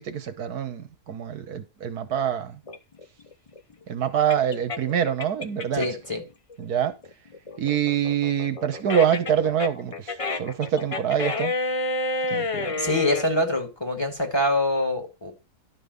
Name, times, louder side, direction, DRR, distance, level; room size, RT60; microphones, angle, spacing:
voice 1, 0.0-2.6 3.9-5.9 6.6-6.9 7.6-11.5 12.3-12.7, right 8 dB, 80° right, 1.6 m, -25 dB
sound 1, 2.7-6.1 6.5-13.3, left 2 dB, 30° left, 0.6 m, -30 dB
voice 2, 5.7-6.2 12.8-15.3, left 1 dB, 15° left, 2.2 m, -25 dB
11.0 x 5.5 x 5.4 m
omnidirectional pair, 1.6 m